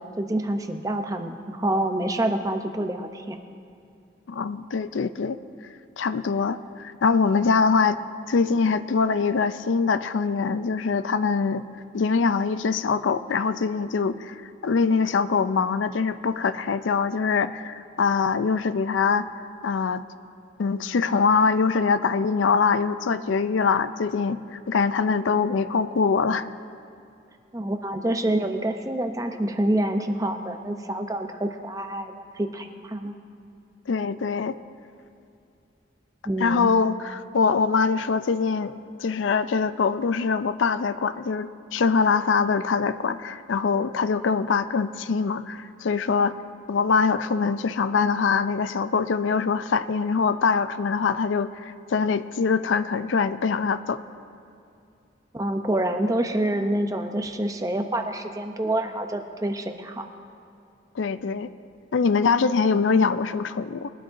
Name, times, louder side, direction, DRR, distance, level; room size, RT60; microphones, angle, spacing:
voice 1, 0.2-3.4 27.5-33.1 36.3-36.7 55.3-60.1, right 1 dB, 20° right, 6 dB, 0.6 m, -27 dB
voice 2, 4.3-5.4 6.0-8.0 8.3-11.6 11.9-19.3 19.6-20.0 20.6-26.5 33.9-34.5 36.4-38.7 39.0-46.4 46.7-54.0 61.0-61.5 61.9-63.9, left 5 dB, 90° left, 13 dB, 0.4 m, -23 dB
21.5 x 12.5 x 2.6 m, 2.5 s
head